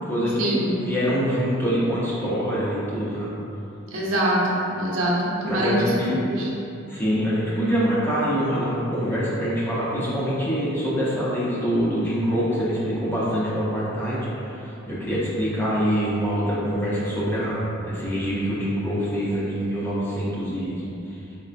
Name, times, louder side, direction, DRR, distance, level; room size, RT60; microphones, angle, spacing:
voice 1, 0.0-3.3 5.4-6.2 6.9-20.8 21.1-21.2, equal, 10° left, -8 dB, 0.5 m, -25 dB
voice 2, 3.9-5.7 6.3-6.5, right 1 dB, 80° right, -5 dB, 0.7 m, -24 dB
4.6 x 2.1 x 2.5 m, 2.9 s
head